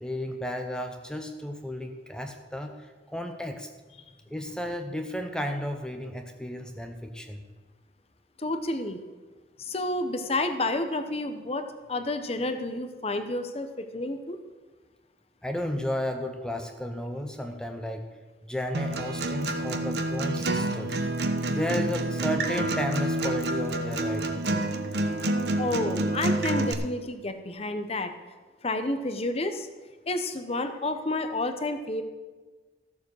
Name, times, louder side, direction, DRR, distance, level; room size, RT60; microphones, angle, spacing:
voice 1, 0.0-2.8 3.1-3.7 4.3-7.4 15.4-18.1 18.4-21.0 21.5-24.4, equal, 5° left, 5 dB, 0.7 m, -33 dB
voice 2, 8.4-9.0 9.6-14.4 25.6-28.1 28.6-29.7 30.1-32.0, left 2 dB, 35° left, 8 dB, 0.9 m, -30 dB
Acoustic guitar, 18.7-26.7, right 1 dB, 60° right, 1.0 m, -28 dB
14.0 x 7.2 x 6.3 m, 1.3 s
head